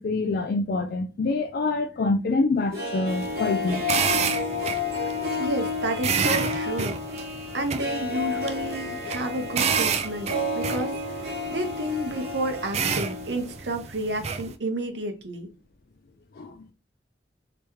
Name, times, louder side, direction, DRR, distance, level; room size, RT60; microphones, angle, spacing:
voice 1, 0.0-3.8 16.4-16.5, left 3 dB, 55° left, 0.4 m, -26 dB
Harp, 2.5-13.6 13.8-13.9, left 3 dB, 55° right, 1.1 m, -31 dB
sound 1, 3.1-14.5, right 6 dB, 35° right, 0.4 m, -30 dB
voice 2, 5.4-6.9 7.5-11.2 11.5-15.5, right 1 dB, 70° right, 0.8 m, -30 dB
3.4 x 3.0 x 3.0 m
head